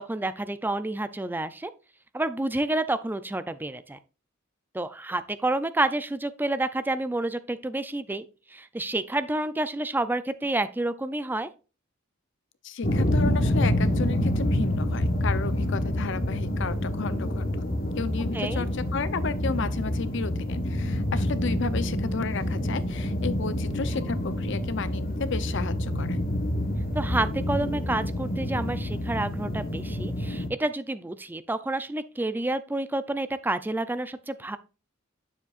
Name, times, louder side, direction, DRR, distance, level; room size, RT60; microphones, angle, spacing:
voice 1, 0.0-1.7 2.1-4.0 4.7-11.5 18.3-18.6 26.9-34.6, right 2 dB, 10° right, 0.4 m, -29 dB
voice 2, 12.6-17.7 18.0-26.2, left 4 dB, 65° left, 0.7 m, -33 dB
sound 1, 12.8-30.5, left 1 dB, 45° left, 1.2 m, -27 dB
9.4 x 7.2 x 2.4 m
head